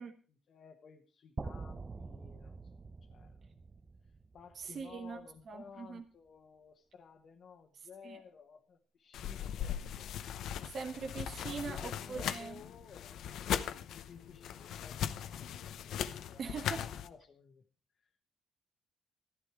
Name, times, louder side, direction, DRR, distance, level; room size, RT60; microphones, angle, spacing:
voice 1, 0.0-2.6 3.0-3.4 4.3-10.1 11.4-16.5 16.9-17.7, left 6 dB, 55° left, 1 dB, 1.4 m, -55 dB
sound 1, 1.4-5.4, right 3 dB, 30° right, 0.7 m, -46 dB
voice 2, 4.6-6.0 8.0-8.2 10.6-12.6 16.4-16.8, right 5 dB, 55° right, 6 dB, 1.3 m, -42 dB
sound 2, 9.1-17.1, left 9 dB, 75° left, 0.8 m, -39 dB
13.5 x 10.5 x 4.7 m, 0.38 s
cardioid pair, 90°, 0 cm